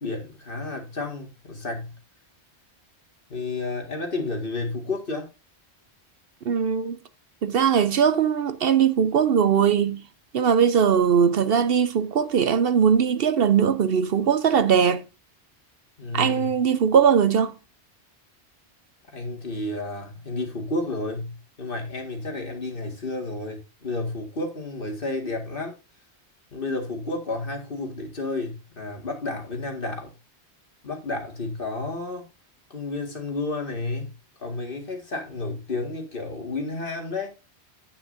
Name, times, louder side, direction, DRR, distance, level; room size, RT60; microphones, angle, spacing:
voice 1, 0.0-1.9 3.3-5.3 16.0-16.6 19.1-25.7 26.5-30.1 30.8-32.3 32.7-34.1 34.4-37.3, left 2 dB, 55° left, 2.2 m, -31 dB
voice 2, 6.4-7.0 7.4-10.0 10.3-15.0 16.1-17.5, right 7 dB, 65° right, 0.8 m, -20 dB
9.5 x 8.8 x 2.6 m
omnidirectional pair, 1.1 m